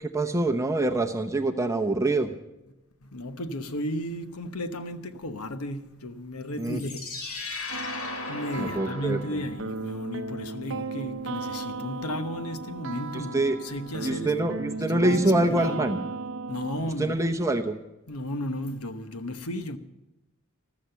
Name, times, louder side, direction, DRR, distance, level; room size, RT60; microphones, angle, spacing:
voice 1, 0.0-2.3 6.6-6.8 8.5-9.4 13.1-13.6 14.0-16.1 17.0-17.7, right 2 dB, 15° right, 0.8 m, -25 dB
voice 2, 3.0-7.8 8.3-14.3 14.6-15.8 16.5-17.1 18.1-19.8, left 1 dB, 85° left, 1.1 m, -34 dB
sound 1, 6.5-9.7, left 4 dB, 70° left, 2.9 m, -37 dB
sound 2, 7.7-16.9, right 4 dB, 60° right, 0.7 m, -36 dB
14.5 x 13.5 x 5.8 m
head